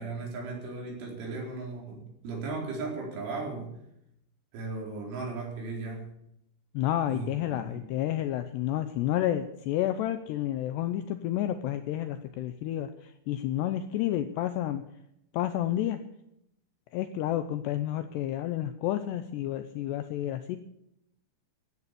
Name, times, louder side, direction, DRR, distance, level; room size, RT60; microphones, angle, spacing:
voice 1, 0.0-3.7 4.5-6.2 7.1-7.9, right 3 dB, 70° right, -1 dB, 6.8 m, -36 dB
voice 2, 6.7-14.8 15.3-16.0 16.9-20.6, left 12 dB, 85° left, 9 dB, 2.4 m, -30 dB
15.0 x 9.8 x 8.5 m, 0.79 s
omnidirectional pair, 5.8 m